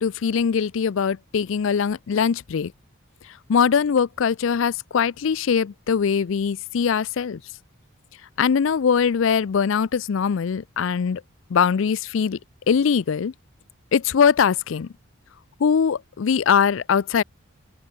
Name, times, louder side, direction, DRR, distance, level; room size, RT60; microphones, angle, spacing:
voice 1, 0.0-2.7 3.5-7.4 8.4-11.2 11.5-12.4 12.7-13.3 13.9-14.9 15.6-17.2, left 6 dB, 70° left, 0.4 m, -21 dB
open air
head